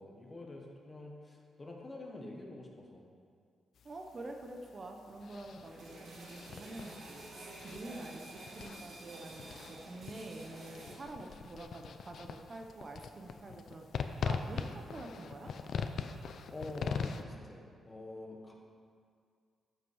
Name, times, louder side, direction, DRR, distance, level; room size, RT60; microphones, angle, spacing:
voice 1, 0.0-3.0 16.5-18.5, left 2 dB, 25° left, 0 dB, 1.5 m, -47 dB
sound 1, 3.8-17.2, left 6 dB, 65° left, 0.5 m, -42 dB
voice 2, 3.8-13.9 14.2-15.5, right 2 dB, 35° right, 3 dB, 0.8 m, -47 dB
sound 2, 5.6-10.9, right 2 dB, 65° right, 2.2 m, -50 dB
13.0 x 5.7 x 4.8 m, 2.2 s
cardioid pair, 110°, 0 cm